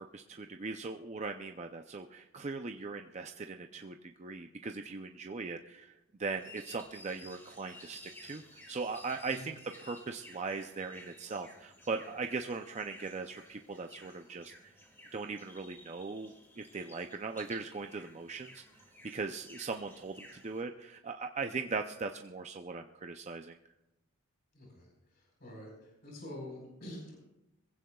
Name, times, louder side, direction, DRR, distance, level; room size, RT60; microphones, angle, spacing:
voice 1, 0.0-5.9 6.2-8.4 8.7-14.5 15.1-18.6 19.1-23.6, right 4 dB, 30° right, 5 dB, 0.5 m, -39 dB
sound 1, 6.3-20.6, left 1 dB, 10° left, 1.8 m, -55 dB
voice 2, 24.5-24.9 25.4-25.7 26.0-27.2, left 1 dB, 45° left, -1 dB, 4.4 m, -46 dB
22.0 x 16.0 x 2.3 m, 0.93 s
head